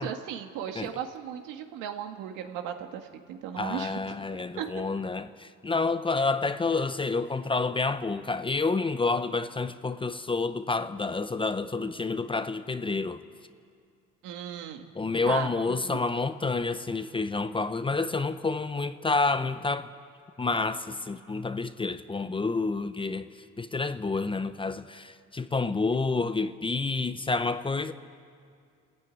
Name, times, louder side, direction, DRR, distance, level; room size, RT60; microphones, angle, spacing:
voice 1, 0.0-4.2 4.6-4.7 14.2-14.9 15.3-15.5 15.8-16.0, right 9 dB, 85° right, 1.9 m, -36 dB
voice 2, 3.6-13.2 14.9-19.9 20.4-23.3 23.6-27.9, left 3 dB, 15° left, 0.7 m, -29 dB
29.0 x 14.5 x 9.1 m
cardioid pair, 110°, 30 cm